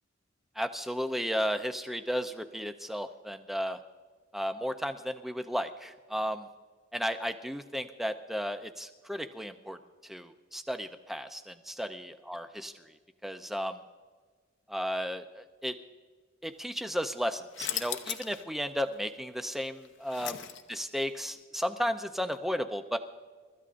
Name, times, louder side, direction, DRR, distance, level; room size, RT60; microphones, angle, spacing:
voice 1, 0.6-3.8 4.3-6.5 6.9-9.8 10.0-12.7 13.2-13.8 14.7-15.7 16.4-20.4 20.7-23.0, equal, ahead, 8 dB, 0.6 m, -34 dB
sound 1, 17.5-18.4 18.8-18.9 19.6-20.9, left 10 dB, 65° left, 0.8 m, -37 dB
29.5 x 14.0 x 2.6 m, 1.5 s
head